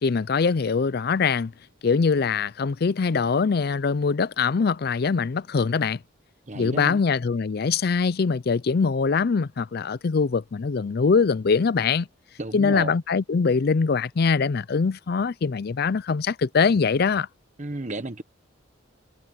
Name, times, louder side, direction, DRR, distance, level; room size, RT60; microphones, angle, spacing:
voice 1, 0.0-1.5 1.8-6.0 6.5-12.1 12.5-17.3, left 5 dB, 50° left, 0.4 m, -23 dB
voice 2, 6.5-7.0 12.4-12.9 17.6-18.2, right 2 dB, 35° right, 1.2 m, -32 dB
head